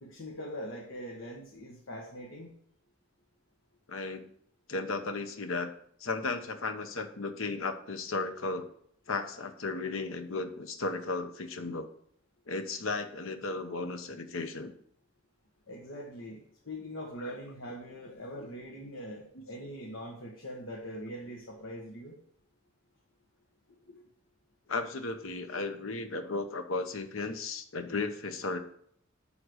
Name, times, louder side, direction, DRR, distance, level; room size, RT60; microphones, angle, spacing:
voice 1, 0.0-2.5 15.7-22.2 23.7-24.0, equal, 70° left, -1 dB, 1.5 m, -42 dB
voice 2, 3.9-4.3 4.7-5.7 6.0-8.7 9.1-11.9 12.5-14.7 17.2-17.3 18.4-18.5 19.3-19.5 24.7-28.6, left 3 dB, 90° left, 8 dB, 1.0 m, -35 dB
11.5 x 3.9 x 6.3 m, 0.66 s
head